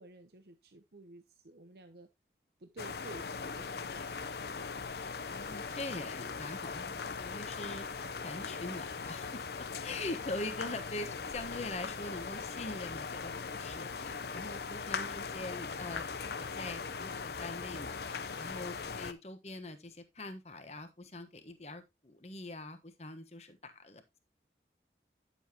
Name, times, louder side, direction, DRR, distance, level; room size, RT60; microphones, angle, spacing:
voice 1, 0.0-2.1 2.6-4.8, right 2 dB, 65° right, 0.8 m, -53 dB
sound 1, 2.8-19.1, left 5 dB, 65° left, 0.7 m, -40 dB
voice 2, 5.3-24.2, left 2 dB, 35° left, 1.2 m, -43 dB
10.0 x 7.2 x 2.9 m
head